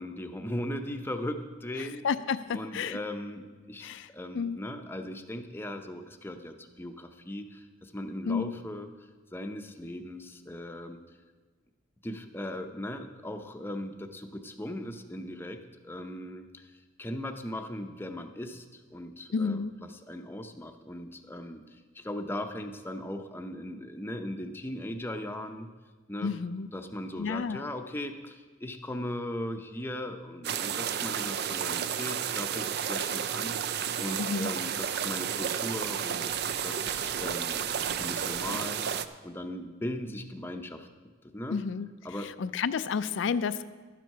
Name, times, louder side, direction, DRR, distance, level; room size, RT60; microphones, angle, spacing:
voice 1, 0.0-2.0 2.5-8.9 9.3-11.0 12.0-25.7 26.1-26.3 26.7-36.3 36.6-40.9 41.2-41.6 42.0-42.3, left 1 dB, 10° left, 6 dB, 0.6 m, -38 dB
voice 2, 1.8-3.0 3.8-4.1 4.3-4.6 8.3-8.5 19.3-19.8 26.2-26.7 27.2-27.6 34.2-34.5 41.5-41.9 42.4-43.6, left 5 dB, 65° left, 13 dB, 0.4 m, -31 dB
sound 1, 30.4-39.1, right 8 dB, 55° right, 0.4 m, -32 dB
12.0 x 7.6 x 5.5 m, 1.4 s
head